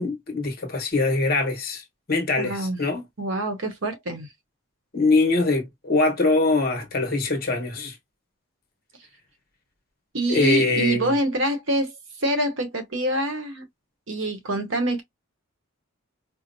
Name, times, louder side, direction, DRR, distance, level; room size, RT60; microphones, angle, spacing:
voice 1, 0.0-3.0 4.9-7.9 10.3-11.1, left 3 dB, 45° left, 1.0 m, -23 dB
voice 2, 2.4-2.8 3.2-4.3 10.1-13.7 14.1-15.0, right 1 dB, 65° right, 0.9 m, -26 dB
4.5 x 2.0 x 2.6 m
head